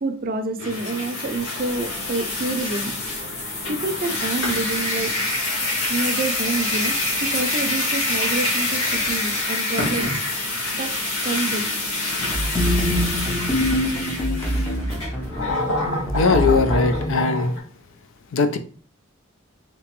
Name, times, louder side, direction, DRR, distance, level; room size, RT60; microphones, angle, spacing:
voice 1, 0.0-2.9 3.7-5.1 5.9-10.2 10.7-10.9 11.2-11.6, right 3 dB, 45° right, 0.5 m, -27 dB
sound 1, 0.6-17.6, left 2 dB, 85° left, 1.3 m, -26 dB
sound 2, 1.2-14.0, equal, 55° left, 0.9 m, -43 dB
sound 3, 12.2-17.2, equal, 10° left, 0.5 m, -25 dB
voice 2, 16.1-17.5 18.3-18.6, left 4 dB, 70° left, 0.4 m, -20 dB
3.4 x 2.9 x 3.0 m
head